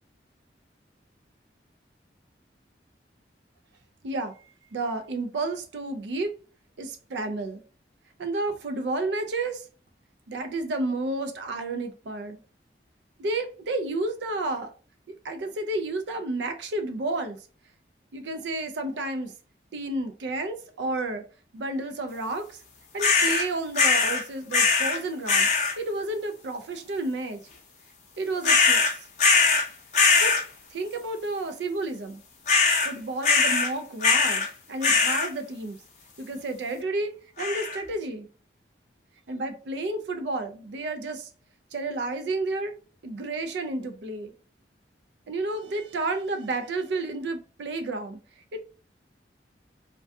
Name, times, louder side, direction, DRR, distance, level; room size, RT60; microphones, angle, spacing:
voice 1, 4.0-4.3 4.7-6.4 6.8-7.6 8.2-9.7 10.3-12.4 13.2-14.7 15.2-17.4 18.1-19.3 19.7-21.2 21.5-22.6 22.9-25.5 25.8-27.4 28.2-28.9 30.2-30.3 30.7-32.2 32.8-35.8 36.2-38.3 39.3-41.3 41.7-42.7 43.0-44.3 45.3-48.2 48.5-48.6, right 2 dB, 80° right, 0.4 m, -31 dB
sound 1, 23.0-23.4 23.8-24.2 24.5-25.0 25.3-25.7 28.4-29.7 29.9-30.4 32.5-32.9 33.2-33.7 34.0-34.5 34.8-35.3 37.4-37.8, left 4 dB, 40° left, 0.5 m, -21 dB
2.3 x 2.2 x 2.5 m
head